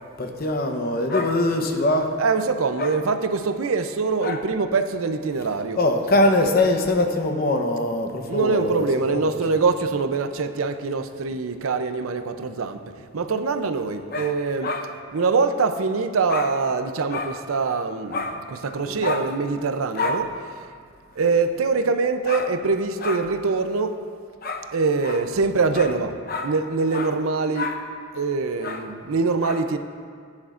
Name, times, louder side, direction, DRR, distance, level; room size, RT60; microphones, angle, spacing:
voice 1, 0.2-2.1 2.8-2.9 4.2-4.4 5.8-9.4 14.1-14.3 14.6-14.9 16.3-16.5 17.1-17.4 18.1-18.4 18.9-19.3 19.9-20.3 22.3-22.5 23.0-23.2 24.4-24.7 25.0-25.2 25.7-25.9 26.3-26.5 26.9-27.1 27.5-27.8 28.6-28.9 29.4-29.6, left 2 dB, 45° left, 4 dB, 0.9 m, -24 dB
voice 2, 2.2-5.8 8.3-14.7 15.1-20.4 21.2-23.9 24.7-27.7 28.1-29.8, right 4 dB, 85° right, 8 dB, 0.6 m, -24 dB
15.5 x 9.7 x 2.5 m, 2.1 s
head